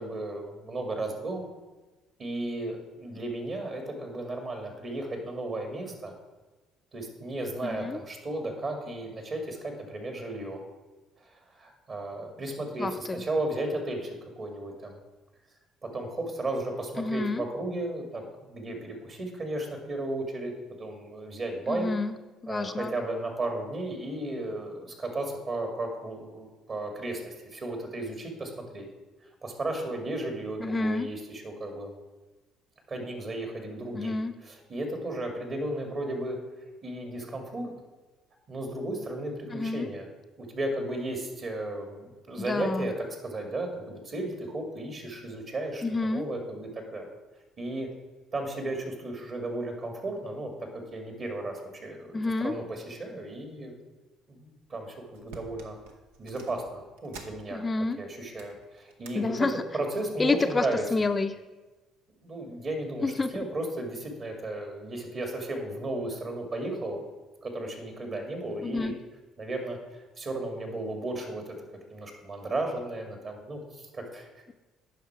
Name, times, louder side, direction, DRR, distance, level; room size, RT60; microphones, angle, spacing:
voice 1, 0.0-1.4 2.2-6.1 6.9-10.6 11.2-15.0 15.8-20.5 20.8-21.9 22.5-28.9 29.4-31.9 32.9-36.4 36.8-37.7 38.5-40.1 40.4-47.1 47.6-47.9 48.3-50.5 50.9-53.7 54.3-55.8 56.2-57.6 58.0-61.1 62.2-67.0 67.4-68.9 69.4-71.6 71.9-74.4, right 2 dB, 45° right, 4 dB, 2.2 m, -34 dB
voice 2, 7.6-8.0 12.8-13.2 17.0-17.4 21.7-22.2 22.4-22.9 30.6-31.1 33.9-34.3 39.5-39.9 42.4-42.9 45.8-46.2 52.1-52.5 57.5-58.0 59.1-59.5 60.2-60.7 60.9-61.3 63.0-63.3 68.6-69.0, left 3 dB, 25° left, 8 dB, 0.4 m, -28 dB
cassette tape deck open close rewind clicks, 54.6-54.8 55.1-57.8 58.2-59.2 59.6-59.9 60.7-61.1 61.6-61.7, right 4 dB, 85° right, 0.9 m, -50 dB
9.2 x 5.8 x 4.7 m, 1.2 s
hypercardioid pair, 65°, 0 cm